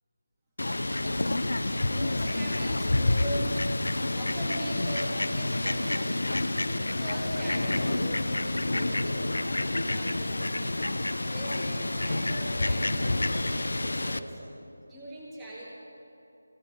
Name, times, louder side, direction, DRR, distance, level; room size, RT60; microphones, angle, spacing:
Fowl, 0.6-14.2, left 2 dB, 80° left, 0.7 m, -28 dB
voice 1, 1.4-11.0 11.2-14.4 14.9-15.6, right 1 dB, 5° right, -9 dB, 1.8 m, -40 dB
17.0 x 15.5 x 4.6 m, 2.7 s
figure-of-eight pair, 170°, 0 cm